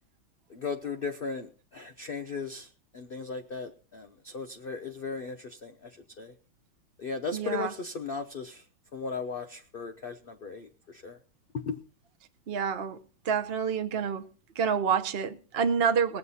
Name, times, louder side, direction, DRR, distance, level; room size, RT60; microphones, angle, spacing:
voice 1, 0.5-6.3 7.0-8.7 8.9-11.2 11.5-11.8, left 4 dB, 55° left, 5 dB, 0.6 m, -37 dB
voice 2, 7.3-7.7 12.5-13.0 13.2-14.3 14.5-16.2, right 6 dB, 50° right, 8 dB, 0.7 m, -28 dB
21.0 x 7.8 x 4.1 m, 0.35 s
omnidirectional pair, 2.1 m